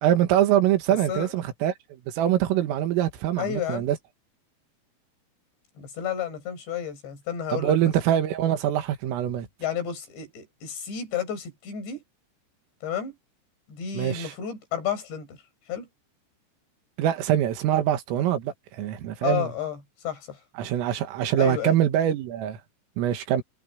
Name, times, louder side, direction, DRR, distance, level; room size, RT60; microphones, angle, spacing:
voice 1, 0.0-4.0 7.5-9.5 13.9-14.3 17.0-19.5 20.6-22.6 23.0-23.4, right 11 dB, 85° right, 4.6 m, -24 dB
voice 2, 3.4-3.8 5.8-7.9 9.6-12.0 12.8-13.2 13.7-15.4 15.7-15.9 19.2-19.8 20.0-20.4 21.4-21.8, left 8 dB, 60° left, 9.0 m, -31 dB
omnidirectional pair, 5.7 m